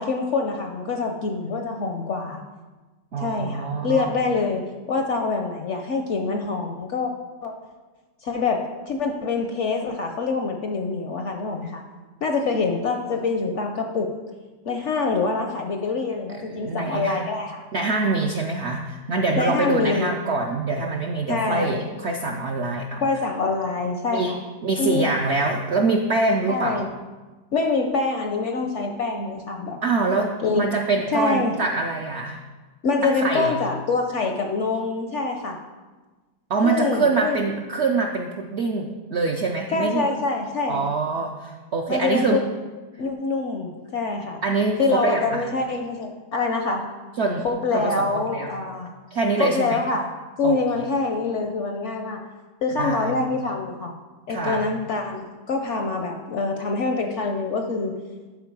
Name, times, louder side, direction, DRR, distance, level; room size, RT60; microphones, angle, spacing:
voice 1, 0.0-2.4 3.2-7.1 7.4-7.5 8.2-11.8 12.2-14.2 14.6-17.6 19.4-20.1 21.3-21.9 23.0-24.4 24.8-25.1 26.5-26.9 27.5-29.8 30.4-30.7 31.1-31.6 32.8-35.6 36.6-37.4 39.7-40.9 41.9-42.4 43.0-44.4 44.8-46.9 47.4-48.9 49.4-50.1 50.4-52.2 52.6-53.9 54.3-58.0, left 4 dB, 65° left, 4 dB, 0.7 m, -25 dB
voice 2, 3.1-4.1 16.3-17.2 17.7-23.1 24.1-24.3 24.6-26.8 29.8-32.4 33.0-33.6 36.5-40.1 40.7-42.4 44.4-45.4 47.2-47.5 47.7-48.5 49.1-49.8 50.4-50.8 52.8-53.1 54.3-54.7, right 3 dB, 70° right, 2 dB, 0.6 m, -25 dB
12.0 x 4.4 x 4.7 m, 1.3 s
omnidirectional pair, 1.8 m